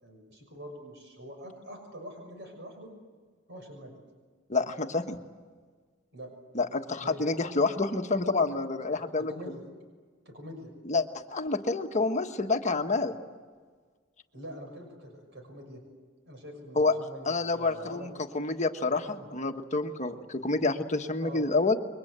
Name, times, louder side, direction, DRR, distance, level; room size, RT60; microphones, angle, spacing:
voice 1, 0.0-2.9 3.5-4.0 6.1-6.3 7.0-7.2 9.2-9.6 10.2-10.7 14.3-15.8 16.3-18.1 19.1-19.3 21.2-21.4, equal, 60° right, 4 dB, 6.2 m, -44 dB
voice 2, 4.5-5.2 6.5-9.3 10.8-11.0 11.3-13.2 16.8-16.9 17.3-21.8, left 3 dB, 35° left, 5 dB, 1.4 m, -28 dB
28.5 x 23.0 x 8.1 m, 1.5 s
head